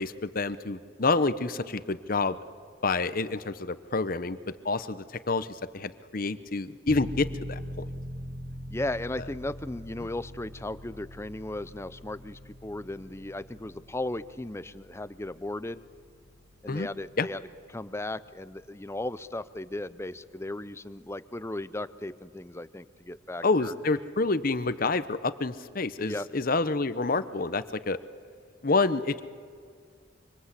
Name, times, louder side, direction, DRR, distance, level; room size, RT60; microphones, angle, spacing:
voice 1, 0.0-2.4 2.8-4.4 4.6-7.9 16.7-16.9 17.2-17.3 23.4-28.0 28.6-29.2, left 3 dB, 45° left, 13 dB, 0.9 m, -28 dB
sound 1, 6.9-19.4 19.7-19.8, equal, 40° right, 5.4 m, -43 dB
voice 2, 8.7-15.8 16.6-17.4 17.7-23.7 26.0-26.3, left 1 dB, 15° left, 15 dB, 0.6 m, -36 dB
25.5 x 25.0 x 8.3 m, 2.1 s
head